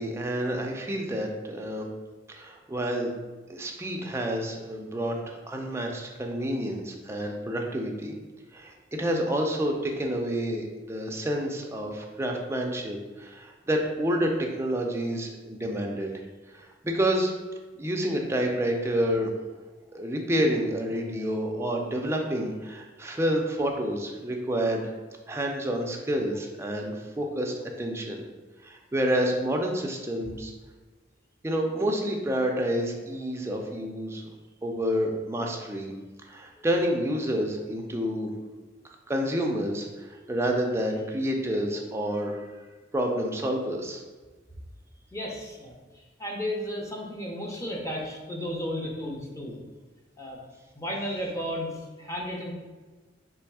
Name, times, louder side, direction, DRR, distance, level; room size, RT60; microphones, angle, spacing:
voice 1, 0.0-1.9 2.3-3.1 3.5-8.1 8.5-16.1 16.5-17.3 17.8-19.3 19.9-24.9 25.3-28.2 28.6-30.5 31.4-34.2 34.6-35.9 36.3-38.3 39.1-42.4 42.9-44.0, equal, 15° right, 1 dB, 0.5 m, -29 dB
voice 2, 45.1-45.8 46.2-49.6 50.2-50.4 50.7-52.5, equal, 15° left, -2 dB, 0.7 m, -33 dB
3.4 x 3.1 x 4.7 m, 1.3 s
head